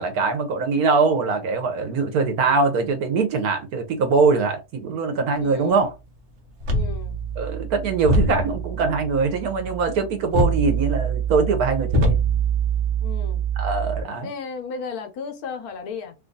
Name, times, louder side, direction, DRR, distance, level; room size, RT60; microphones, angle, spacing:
voice 1, 0.0-5.9 7.4-12.2 13.6-14.3, right 4 dB, 75° right, 1.2 m, -22 dB
voice 2, 5.4-5.9 6.7-7.2 13.0-13.5 14.2-16.1, left 5 dB, 75° left, 1.2 m, -34 dB
sound 1, 6.6-14.0, right 3 dB, 55° right, 1.2 m, -24 dB
3.0 x 2.4 x 3.8 m
omnidirectional pair, 1.6 m